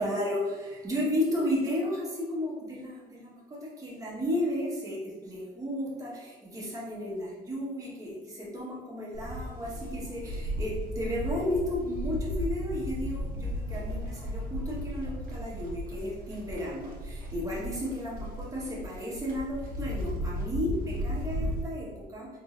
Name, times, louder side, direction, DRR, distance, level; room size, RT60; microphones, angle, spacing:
voice 1, 0.0-22.3, left 1 dB, 20° right, -5 dB, 1.4 m, -33 dB
Livestock farm animals working animals, 9.1-21.6, equal, 55° right, 1.0 m, -35 dB
3.8 x 3.8 x 2.6 m, 1.3 s
cardioid pair, 110°, 17 cm